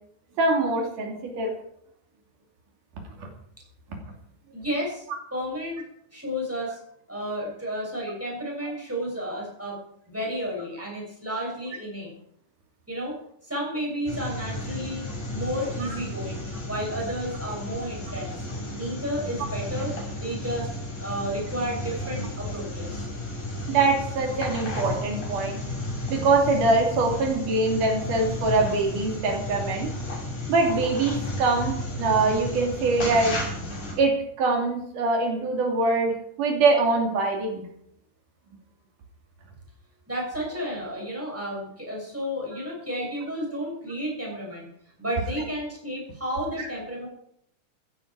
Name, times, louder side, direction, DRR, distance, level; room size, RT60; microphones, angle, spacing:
voice 1, 0.4-1.5 3.2-3.3 15.8-15.9 23.7-25.6 26.1-30.0 30.5-33.4 34.0-37.6 46.6-46.7, right 3 dB, 85° right, 2 dB, 4.3 m, -23 dB
voice 2, 4.5-5.1 5.3-5.8 6.1-6.8 7.1-9.8 10.1-12.1 12.9-18.4 18.7-20.7 21.0-23.1 40.1-44.7 45.0-47.1, equal, 5° right, -2 dB, 6.7 m, -32 dB
sound 1, 14.1-33.9, left 1 dB, 80° left, 7.7 m, -33 dB
15.5 x 15.5 x 4.8 m, 0.71 s
omnidirectional pair, 3.6 m